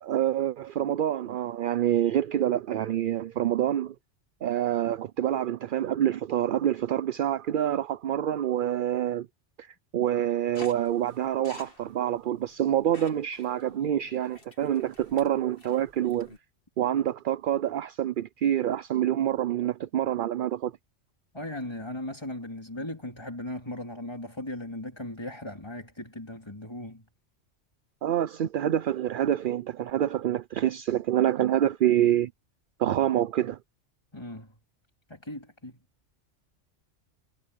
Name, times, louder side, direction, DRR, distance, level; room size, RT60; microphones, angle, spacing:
voice 1, 0.0-3.9 4.4-9.3 9.6-16.3 16.8-20.7 28.0-32.3 32.8-33.6, right 11 dB, 55° right, 0.6 m, -26 dB
sound 1, 10.5-16.4, left 2 dB, 50° left, 3.1 m, -51 dB
voice 2, 21.3-27.0 34.1-34.5 35.1-35.8, left 1 dB, 20° left, 3.4 m, -37 dB
omnidirectional pair, 1.2 m